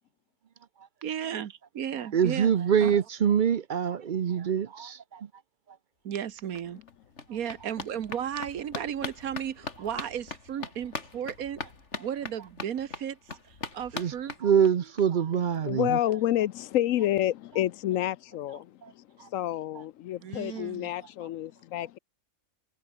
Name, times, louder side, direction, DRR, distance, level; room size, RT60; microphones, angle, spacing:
voice 1, 1.0-2.5 2.8-3.0 6.1-6.8 7.3-9.5 9.8-11.6 12.0-13.1 13.8-14.3 20.2-20.9, right 9 dB, 75° right, 1.5 m, -34 dB
voice 2, 2.1-5.3 13.9-14.1 14.4-16.0 18.8-18.9 19.2-19.3 19.7-19.8, right 8 dB, 50° right, 0.6 m, -25 dB
sound 1, 6.2-6.3 6.5-15.0 15.3-15.4 15.7-15.8 16.0-16.1, left 4 dB, 50° left, 2.7 m, -41 dB
voice 3, 15.7-18.7 19.3-22.0, left 13 dB, 70° left, 0.9 m, -29 dB
omnidirectional pair, 1.5 m